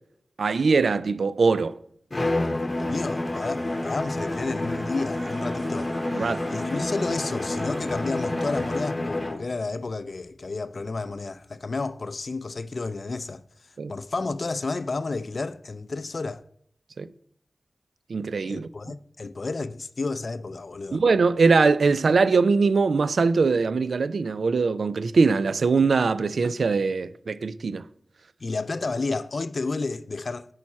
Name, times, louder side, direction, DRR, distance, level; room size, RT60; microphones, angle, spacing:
voice 1, 0.4-1.7 6.1-6.5 13.8-13.9 17.0-17.1 18.1-18.7 20.9-27.8, right 4 dB, 80° right, 0.3 m, -22 dB
Bowed string instrument, 2.1-9.5, left 2 dB, 40° left, 0.8 m, -29 dB
sound 1, 2.7-8.8, right 2 dB, 50° right, 1.3 m, -43 dB
voice 2, 2.8-13.4 13.9-16.4 18.5-21.0 28.4-30.5, left 3 dB, 60° left, 0.4 m, -31 dB
8.9 x 4.8 x 4.2 m
cardioid pair, 45°, 0 cm